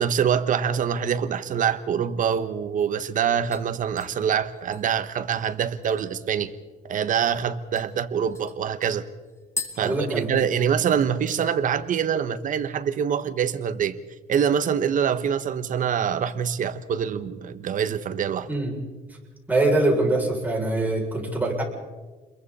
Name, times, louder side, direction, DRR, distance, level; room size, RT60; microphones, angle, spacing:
voice 1, 0.0-6.5 6.8-9.0 9.8-14.0 14.3-18.5, right 8 dB, 50° right, 1.3 m, -25 dB
sound 1, 3.5-6.3 6.7-6.8 7.1-7.3 7.7-10.7 11.0-11.5 11.8-12.2 12.5-12.6 14.7-15.3 15.7-16.4 16.8-17.1 17.6-18.5 18.9-19.0, left 3 dB, 15° left, 3.4 m, -42 dB
voice 2, 9.8-10.5 18.5-18.8 19.5-21.6, right 2 dB, 10° right, 7.0 m, -23 dB
30.0 x 22.0 x 4.3 m
cardioid pair, 110°, 17 cm